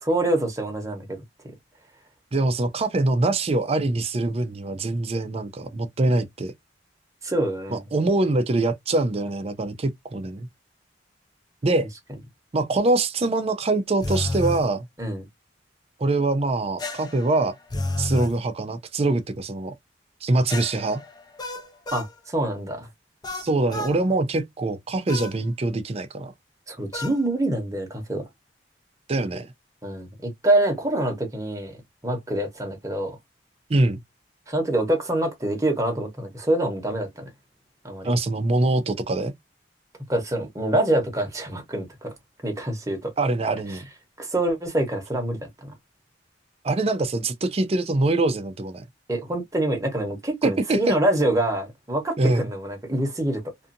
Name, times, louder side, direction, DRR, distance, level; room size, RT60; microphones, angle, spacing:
voice 1, 0.0-1.2 7.2-7.8 15.0-15.3 21.9-22.9 26.7-28.3 29.8-33.2 34.5-37.3 37.8-38.1 40.1-42.1 42.4-43.1 44.2-45.7 49.1-53.5, right 1 dB, 20° right, 0.9 m, -25 dB
voice 2, 2.3-6.5 7.7-10.5 11.6-11.9 12.5-14.9 16.0-17.6 18.0-19.7 20.2-21.0 23.3-26.3 29.1-29.5 33.7-34.0 38.0-39.3 43.2-43.8 46.6-48.8 50.4-51.0 52.2-52.5, right 2 dB, 35° right, 0.4 m, -24 dB
sound 1, 14.0-14.7 16.8-18.4 20.5-22.1 23.2-24.0 25.1-25.4 26.9-27.2, left 2 dB, 25° left, 0.5 m, -30 dB
2.6 x 2.4 x 2.5 m
head